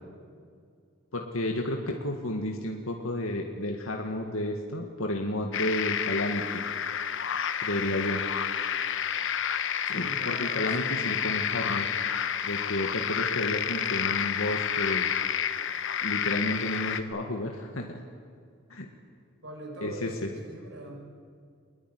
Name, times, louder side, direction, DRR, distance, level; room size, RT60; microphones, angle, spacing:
voice 1, 1.1-6.6 7.6-8.3 9.9-11.9 12.4-15.1 16.0-18.0 18.7-18.9 19.8-20.3, left 1 dB, 90° left, 2 dB, 2.0 m, -32 dB
sound 1, 5.5-17.0, left 8 dB, 65° left, 1.1 m, -30 dB
voice 2, 9.9-11.0 19.4-20.9, right 1 dB, 65° right, 0 dB, 6.9 m, -42 dB
22.5 x 21.0 x 9.6 m, 2.2 s
head